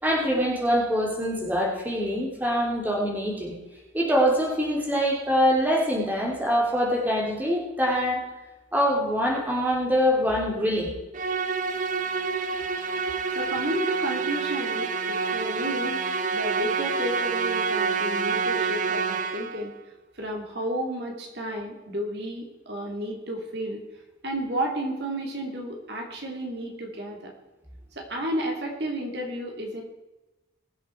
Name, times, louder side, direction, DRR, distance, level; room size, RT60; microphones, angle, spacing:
voice 1, 0.0-3.5 3.9-8.2 8.7-10.9, equal, 10° right, -2 dB, 3.1 m, -24 dB
Musical instrument, 11.1-19.7, right 5 dB, 40° right, 0.9 m, -27 dB
voice 2, 13.3-16.0 16.3-19.7 20.1-23.8 24.2-27.3 28.0-29.8, right 1 dB, 55° right, 0 dB, 2.7 m, -32 dB
22.5 x 7.7 x 4.5 m, 1.1 s
head